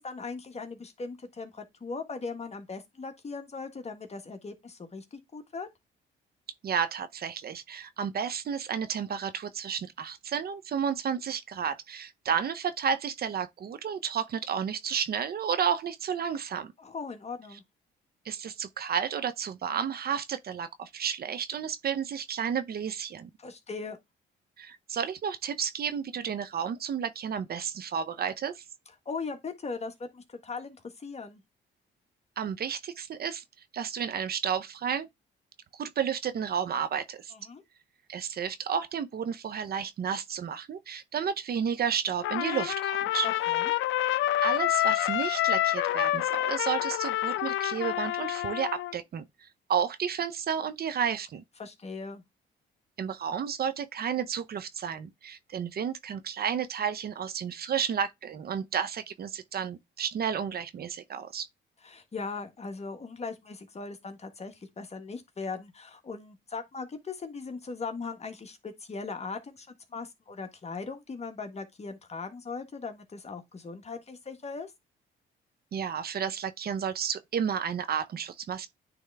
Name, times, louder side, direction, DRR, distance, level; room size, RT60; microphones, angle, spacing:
voice 1, 0.0-5.7 16.8-17.6 23.4-24.0 29.0-31.4 37.3-37.6 43.2-43.7 51.6-52.2 61.8-74.7, left 4 dB, 35° left, 1.5 m, -39 dB
voice 2, 6.6-16.7 18.2-23.3 24.6-28.6 32.4-33.4 33.7-35.1 35.7-37.3 38.1-43.3 44.4-51.4 53.0-61.5 75.7-78.7, right 7 dB, 50° right, 0.7 m, -32 dB
Trumpet, 42.2-49.0, left 14 dB, 80° left, 0.5 m, -28 dB
9.5 x 3.5 x 3.4 m
cardioid pair, 90°, 20 cm